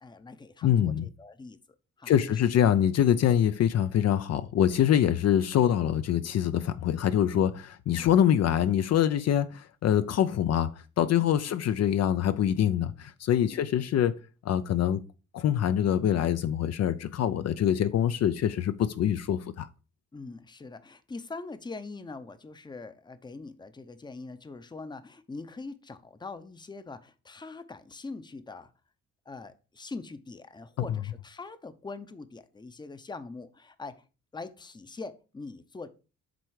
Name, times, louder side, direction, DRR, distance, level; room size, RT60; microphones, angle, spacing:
voice 1, 0.0-1.6 2.0-2.5 13.5-13.6 20.1-28.7 29.3-34.0 34.3-35.9, left 3 dB, 15° left, 0.7 m, -43 dB
voice 2, 0.6-1.1 2.1-15.0 15.3-19.7, left 10 dB, 55° left, 0.5 m, -25 dB
7.7 x 3.4 x 4.7 m
cardioid pair, 90°, 30 cm